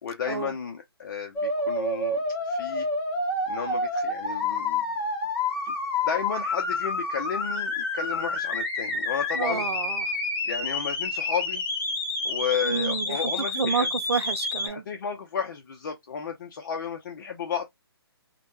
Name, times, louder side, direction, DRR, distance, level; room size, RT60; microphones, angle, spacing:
voice 1, 0.0-2.2 2.4-2.9 3.5-4.8 5.6-5.7 6.0-9.6 10.4-11.6 12.2-13.9 14.7-17.6, left 7 dB, 50° left, 0.5 m, -32 dB
sound 1, 1.4-14.7, left 2 dB, 20° left, 0.8 m, -29 dB
voice 2, 9.3-10.1 12.6-13.3 13.6-14.8, right 6 dB, 85° right, 0.4 m, -29 dB
2.1 x 2.1 x 2.9 m
hypercardioid pair, 150°, 13 cm